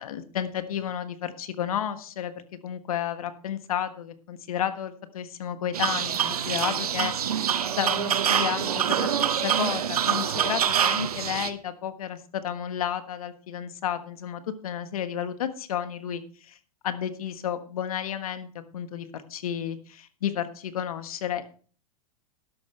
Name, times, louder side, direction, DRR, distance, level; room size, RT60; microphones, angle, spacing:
voice 1, 0.0-2.3 2.6-7.5 7.8-9.1 9.4-16.6 16.8-18.5 18.7-21.5, left 9 dB, 70° left, 10 dB, 1.4 m, -32 dB
sound 1, 5.7-11.5, right 8 dB, 80° right, 1.0 m, -25 dB
13.5 x 11.0 x 3.3 m, 0.41 s
hypercardioid pair, 100°, 19 cm